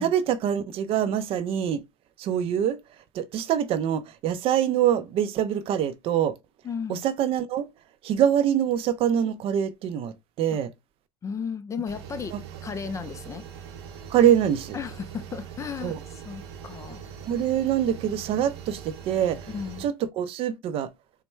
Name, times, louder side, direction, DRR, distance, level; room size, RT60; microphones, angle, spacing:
voice 1, 0.0-1.8 2.2-2.8 3.1-6.3 6.9-7.7 8.0-10.7 12.3-12.4 14.1-14.8 15.8-16.0 17.3-19.5 19.8-20.9, right 9 dB, 45° right, 0.5 m, -24 dB
voice 2, 6.6-7.0 11.2-13.5 14.7-17.0 19.5-19.9, left 6 dB, 25° left, 0.4 m, -35 dB
sound 1, 11.9-19.9, right 8 dB, 85° right, 0.9 m, -42 dB
4.4 x 2.1 x 3.1 m
supercardioid pair, 110°, 13 cm